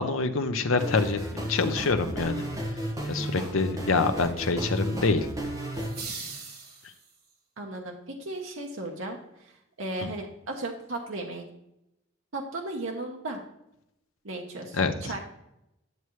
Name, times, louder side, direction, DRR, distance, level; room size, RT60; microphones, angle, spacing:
voice 1, 0.0-2.5 3.1-5.3 10.0-10.1 14.7-15.1, left 3 dB, 80° left, 8 dB, 0.8 m, -26 dB
sound 1, 0.8-6.0, equal, 15° right, 1.3 m, -33 dB
sound 2, 5.7-7.3, right 4 dB, 45° right, 1.6 m, -40 dB
voice 2, 7.6-9.5 9.8-11.4 12.3-13.4 14.2-15.2, right 2 dB, 70° right, 1 dB, 1.0 m, -35 dB
11.0 x 7.0 x 3.1 m, 0.83 s
head